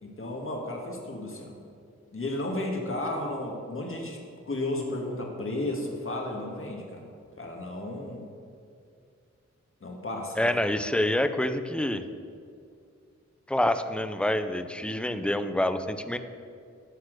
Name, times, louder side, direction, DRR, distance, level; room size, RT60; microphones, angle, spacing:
voice 1, 0.0-1.5 2.1-4.2 4.5-7.1 7.4-8.2 9.8-10.5, left 1 dB, 45° left, 0 dB, 1.7 m, -33 dB
voice 2, 10.4-12.0 13.5-16.2, left 1 dB, 5° left, 10 dB, 0.5 m, -27 dB
11.5 x 4.4 x 6.4 m, 2.4 s
wide cardioid pair, 65°, 29 cm